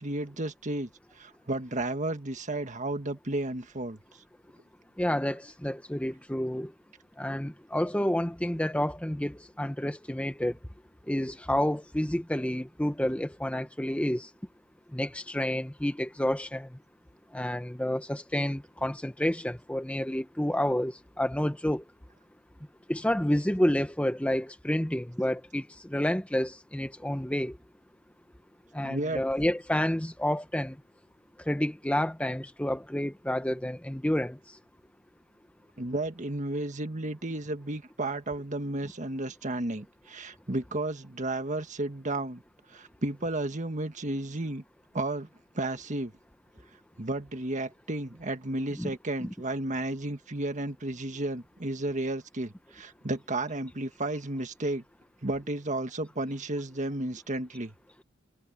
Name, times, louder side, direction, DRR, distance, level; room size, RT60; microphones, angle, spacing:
voice 1, 0.0-4.0 28.8-29.2 35.8-42.4 42.7-44.6 44.9-45.3 45.5-46.1 47.0-54.8 55.2-57.7, right 2 dB, 40° right, 1.6 m, -33 dB
voice 2, 5.0-6.7 7.2-10.6 11.1-14.3 14.9-16.7 17.3-21.8 22.9-27.6 28.7-30.8 31.5-34.4 48.8-48.9, left 1 dB, 5° left, 0.9 m, -29 dB
head